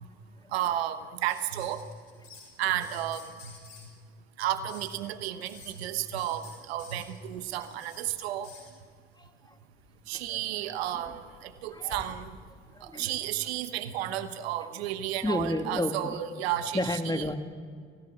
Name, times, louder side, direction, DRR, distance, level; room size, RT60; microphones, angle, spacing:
voice 1, 0.5-1.8 2.6-3.3 4.4-8.5 10.1-12.4 12.8-17.2, right 12 dB, 90° right, 11 dB, 1.1 m, -32 dB
sound 1, 1.3-2.5 2.8-3.9 4.7-5.0 5.4-5.7 6.2-8.0 8.4-8.7 9.8-10.3 10.7-12.1 13.4-13.5, left 5 dB, 80° left, 7.0 m, -50 dB
voice 2, 9.2-9.5 10.1-11.1 11.7-12.0 12.7-13.2 15.2-16.2 16.7-17.4, left 1 dB, 15° left, 6 dB, 2.5 m, -32 dB
29.0 x 17.0 x 9.9 m, 2.1 s
hypercardioid pair, 45°, 30 cm